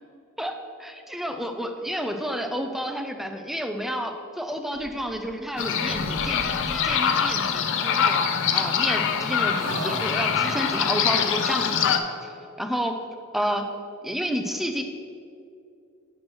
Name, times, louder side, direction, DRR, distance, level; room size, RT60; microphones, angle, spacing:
voice 1, 0.4-8.3 8.5-13.0 13.3-13.7 14.0-14.8, equal, ahead, 5 dB, 0.4 m, -30 dB
sound 1, 4.7-5.6 5.9-7.0 8.4-9.2 9.6-10.8, right 2 dB, 70° right, 0.6 m, -38 dB
sound 2, 5.6-12.0, left 7 dB, 60° left, 0.4 m, -24 dB
6.1 x 4.5 x 6.2 m, 2.5 s
head